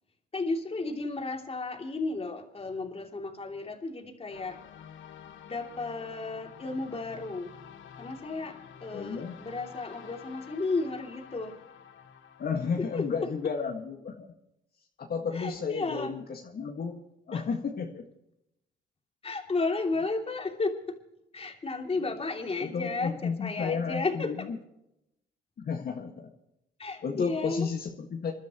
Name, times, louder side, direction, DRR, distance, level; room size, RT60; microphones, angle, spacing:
voice 1, 0.3-4.6 5.5-7.5 8.0-11.6 12.8-13.1 15.3-16.1 17.3-17.4 19.2-21.0 21.3-24.5 26.8-27.7, left 3 dB, 30° left, 3 dB, 2.9 m, -33 dB
sound 1, 4.3-13.6, left 8 dB, 80° left, 1.5 m, -50 dB
voice 2, 8.9-9.4 12.4-14.3 15.0-18.0 22.6-24.6 25.6-26.3 27.0-28.3, left 5 dB, 50° left, 1 dB, 1.9 m, -33 dB
28.0 x 12.5 x 3.1 m, 0.83 s
cardioid pair, 90°, 20 cm